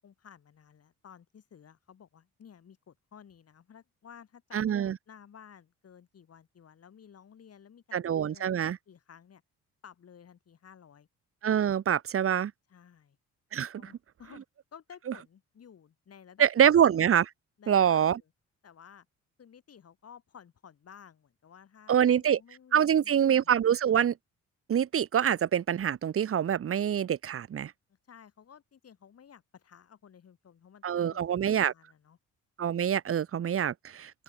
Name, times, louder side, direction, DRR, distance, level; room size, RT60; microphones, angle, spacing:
voice 1, 0.0-9.4 9.8-11.1 12.7-13.2 13.8-14.4 14.7-16.9 17.6-18.3 18.6-19.1 19.4-23.5 27.9-32.2, left 8 dB, 55° left, 7.1 m, -54 dB
voice 2, 4.5-5.0 7.9-8.8 11.4-12.5 13.5-13.8 16.4-17.3 17.7-18.2 21.9-22.4 22.7-24.1 24.7-27.7 30.8-31.7 32.6-34.2, right 9 dB, 45° right, 1.1 m, -25 dB
open air
cardioid pair, 90°, 30 cm